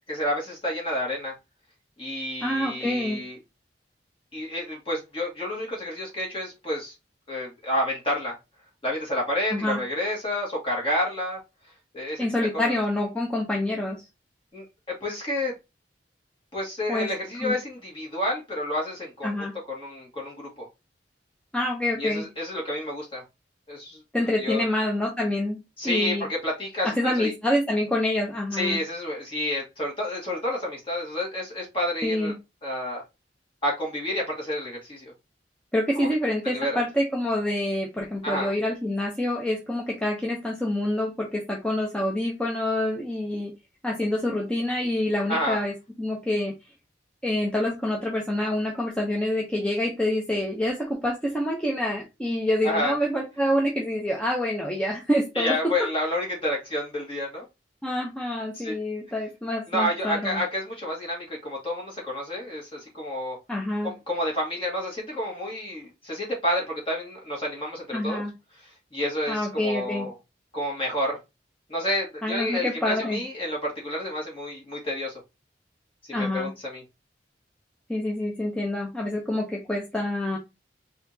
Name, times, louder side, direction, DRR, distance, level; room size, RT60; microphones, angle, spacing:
voice 1, 0.1-1.3 2.0-3.4 4.3-6.9 7.3-8.4 8.8-11.4 11.9-12.2 12.5-12.7 14.5-15.6 16.5-20.7 22.0-23.2 23.7-24.0 24.4-24.6 25.8-27.3 28.5-32.3 32.6-33.0 33.6-35.1 36.0-36.1 36.4-36.8 38.2-38.5 45.3-45.6 52.6-53.0 55.4-57.4 58.5-58.7 59.7-63.4 63.8-68.2 68.9-70.1 70.5-71.2 71.7-75.2 76.1-76.8, left 1 dB, 30° left, 1.8 m, -29 dB
voice 2, 2.4-3.2 9.5-9.8 12.2-14.0 16.9-17.1 17.4-17.5 19.2-19.5 21.5-22.2 24.1-26.3 27.0-28.8 32.0-32.3 35.7-43.5 43.8-46.5 47.2-55.7 57.8-60.4 63.5-63.9 67.9-68.3 69.3-70.1 72.2-73.2 76.1-76.5 77.9-80.4, left 1 dB, 5° left, 0.6 m, -27 dB
4.1 x 2.7 x 2.7 m
head